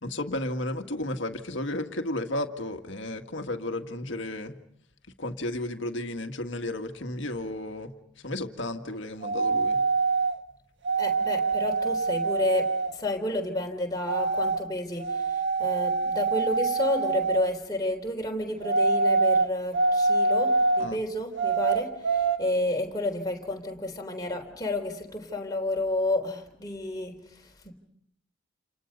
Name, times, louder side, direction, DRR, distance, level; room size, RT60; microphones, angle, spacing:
voice 1, 0.0-4.6 5.2-7.9 8.2-9.8 20.8-21.0, left 1 dB, 65° left, 1.9 m, -33 dB
sound 1, 9.2-10.4 10.8-13.0 14.1-14.6 15.0-17.5 18.6-20.9 21.4-22.4, right 4 dB, 60° right, 1.7 m, -25 dB
voice 2, 11.0-27.7, left 1 dB, 20° left, 3.6 m, -31 dB
29.5 x 29.0 x 5.4 m
head